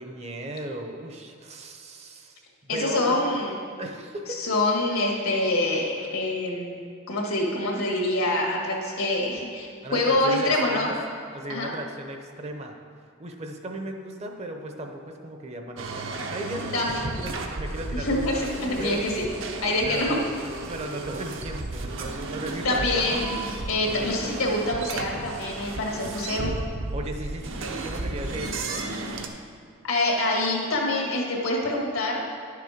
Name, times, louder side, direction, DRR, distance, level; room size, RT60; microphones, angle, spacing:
voice 1, 0.0-3.5 3.8-4.4 9.8-10.9 11.3-12.7 13.2-19.0 19.8-23.2 23.8-24.5 26.1-26.2 26.9-28.8, right 1 dB, 30° right, 4 dB, 0.7 m, -36 dB
voice 2, 2.7-3.6 4.4-6.8 7.1-10.9 11.5-11.7 16.7-17.0 18.0-19.3 19.6-20.2 22.6-26.5 29.8-32.2, left 2 dB, 80° left, -1 dB, 2.0 m, -25 dB
sound 1, 15.8-29.3, right 2 dB, 65° right, 0.8 m, -34 dB
10.5 x 6.8 x 5.0 m, 2.4 s
head